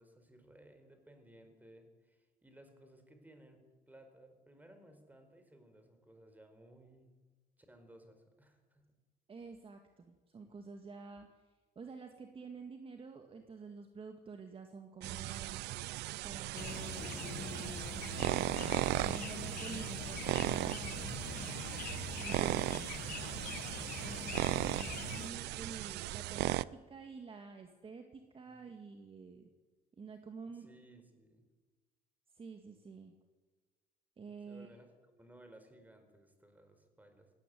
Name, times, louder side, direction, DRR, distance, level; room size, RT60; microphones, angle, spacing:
voice 1, 0.0-7.1 7.6-8.9 28.5-28.6 30.5-31.4 34.5-37.3, right 1 dB, 10° right, 6 dB, 4.7 m, -60 dB
voice 2, 9.3-11.3 11.8-15.6 16.2-21.2 22.2-22.9 24.0-29.5 30.0-30.7 32.3-33.1 34.2-34.7, right 4 dB, 35° right, 5 dB, 2.0 m, -49 dB
sound 1, 15.0-26.6, right 17 dB, 80° right, 0.5 m, -37 dB
sound 2, 16.5-25.3, left 10 dB, 60° left, 1.1 m, -44 dB
17.5 x 17.5 x 9.4 m, 1.3 s
cardioid pair, 110°, 17 cm